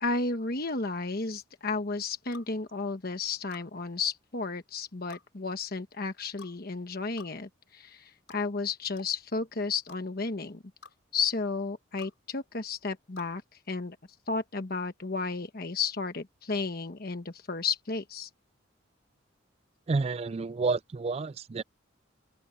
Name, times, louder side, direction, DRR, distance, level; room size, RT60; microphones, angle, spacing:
voice 1, 0.0-10.6 11.1-13.4 13.7-14.0 14.3-18.3, left 4 dB, 50° left, 1.2 m, -33 dB
sound 1, 2.3-2.5 3.5-3.7 5.1-5.3 6.4-6.6 7.2-7.3 8.3-8.4 9.0-9.1 9.9-10.0 10.8-11.0 12.0-12.1 13.2-13.3, left 6 dB, 75° left, 5.6 m, -49 dB
voice 2, 19.9-21.6, right 3 dB, 30° right, 0.3 m, -30 dB
open air
head